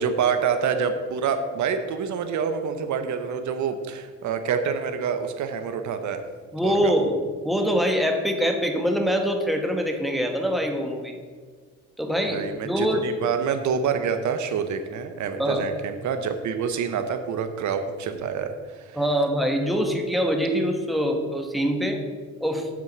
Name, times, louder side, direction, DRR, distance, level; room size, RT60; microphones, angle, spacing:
voice 1, 0.0-6.2 6.6-6.9 12.3-19.0, right 6 dB, 70° right, 8 dB, 0.8 m, -27 dB
voice 2, 6.5-7.2 7.4-11.2 12.0-13.1 15.4-15.7 18.9-22.0 22.4-22.7, equal, ahead, 3 dB, 1.2 m, -24 dB
8.3 x 4.6 x 7.3 m, 1.6 s
cardioid pair, 90°, 30 cm